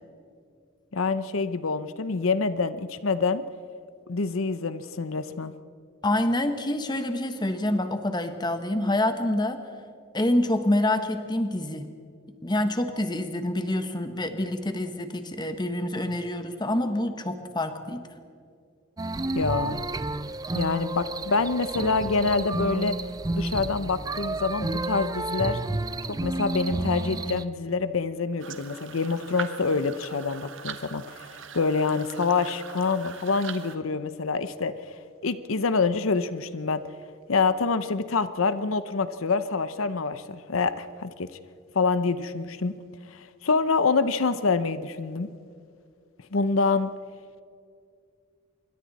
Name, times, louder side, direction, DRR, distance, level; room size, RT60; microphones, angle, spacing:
voice 1, 0.9-3.4 4.1-5.5 19.3-19.8 20.5-23.0 23.4-25.6 26.1-31.3 31.5-34.9 35.2-36.8 37.3-41.3 41.7-42.8 43.1-45.3 46.3-46.9, left 4 dB, 80° left, 12 dB, 0.8 m, -26 dB
voice 2, 6.0-9.6 10.1-11.9 12.4-18.0, left 1 dB, 20° left, 7 dB, 1.3 m, -27 dB
sound 1, 19.0-27.4, right 2 dB, 20° right, 0.4 m, -31 dB
sound 2, 28.4-33.8, right 6 dB, 65° right, 1.2 m, -41 dB
27.0 x 23.5 x 4.2 m, 2.3 s
head